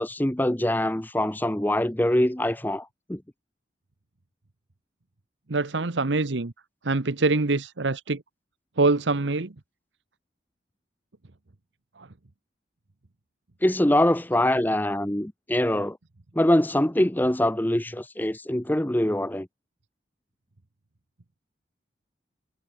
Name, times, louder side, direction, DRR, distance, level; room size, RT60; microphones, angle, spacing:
voice 1, 0.0-3.2 13.6-16.0 16.4-19.5, left 1 dB, 10° left, 0.8 m, -24 dB
voice 2, 5.5-6.5 6.8-8.2 8.8-9.5 12.0-12.1, right 3 dB, 90° right, 1.1 m, -24 dB
head